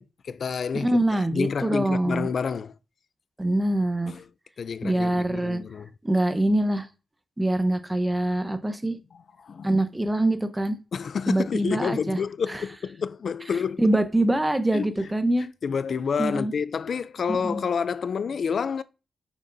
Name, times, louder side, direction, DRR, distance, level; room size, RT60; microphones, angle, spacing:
voice 1, 0.0-0.9 1.3-2.8 4.1-4.2 4.6-5.9 9.1-9.7 10.9-13.9 14.7-14.9 15.6-18.8, left 6 dB, 60° left, 0.4 m, -29 dB
voice 2, 0.7-2.3 3.4-4.1 4.8-5.6 6.0-6.9 7.4-9.0 9.6-10.8 11.3-12.2 12.5-12.6 13.8-15.5 16.2-16.5 17.3-17.6, right 1 dB, 15° right, 0.9 m, -24 dB
8.7 x 7.1 x 2.7 m
wide cardioid pair, 105°, 0 cm